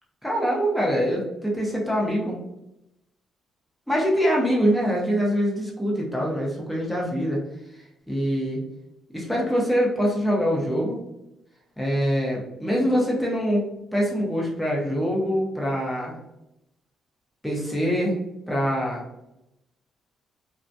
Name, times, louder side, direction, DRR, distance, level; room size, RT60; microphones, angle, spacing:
voice 1, 0.2-2.4 3.9-7.4 8.1-8.6 9.1-11.0 11.8-16.1 17.4-18.1 18.5-19.0, equal, 5° left, -4 dB, 0.7 m, -24 dB
2.4 x 2.2 x 2.6 m, 0.87 s
cardioid pair, 90°, 0 cm